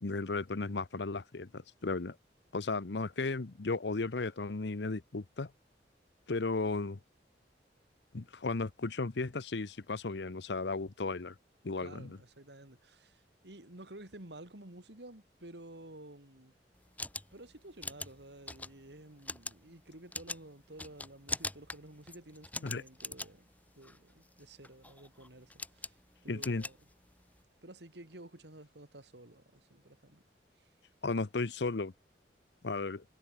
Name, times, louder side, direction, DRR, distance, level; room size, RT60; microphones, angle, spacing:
voice 1, 0.0-2.2 2.5-5.5 6.3-7.0 8.1-11.3 11.6-12.2 22.6-22.8 26.3-26.6 31.0-31.9 32.6-33.0, left 3 dB, 75° left, 0.8 m, -35 dB
voice 2, 11.8-16.5 17.3-23.5 23.7-26.0 26.2-26.8 27.6-30.2 30.6-30.7, right 1 dB, 75° right, 3.3 m, -52 dB
sound 1, 16.7-27.4, left 2 dB, 10° left, 1.7 m, -44 dB
head